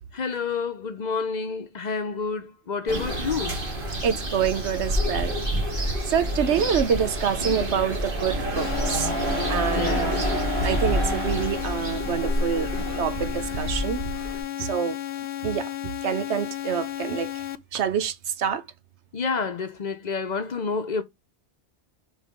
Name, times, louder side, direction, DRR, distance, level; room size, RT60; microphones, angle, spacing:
voice 1, 0.1-3.6 9.7-10.1 19.1-21.0, left 5 dB, 50° left, 0.7 m, -29 dB
sound 1, 2.9-14.4, equal, 50° right, 1.8 m, -28 dB
voice 2, 4.0-5.4 5.7-9.1 9.5-10.2 10.6-12.7 13.0-15.0 15.4-17.4 17.7-18.6, right 8 dB, 90° right, 1.1 m, -27 dB
sound 2, 8.6-17.6, left 13 dB, 85° left, 0.9 m, -33 dB
5.4 x 3.6 x 4.9 m
omnidirectional pair, 1.1 m